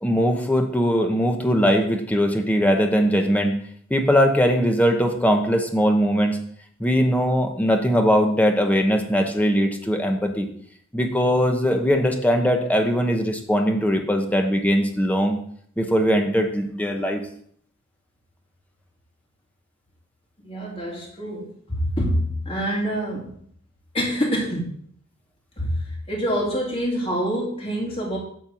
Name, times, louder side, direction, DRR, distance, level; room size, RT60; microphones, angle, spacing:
voice 1, 0.0-3.6 3.9-6.4 6.8-10.5 10.9-15.4 15.8-17.2, equal, 10° left, 3 dB, 1.1 m, -20 dB
voice 2, 20.4-23.3 23.9-24.8 25.6-28.2, equal, 30° left, -3 dB, 2.9 m, -26 dB
9.1 x 4.5 x 7.1 m, 0.63 s
head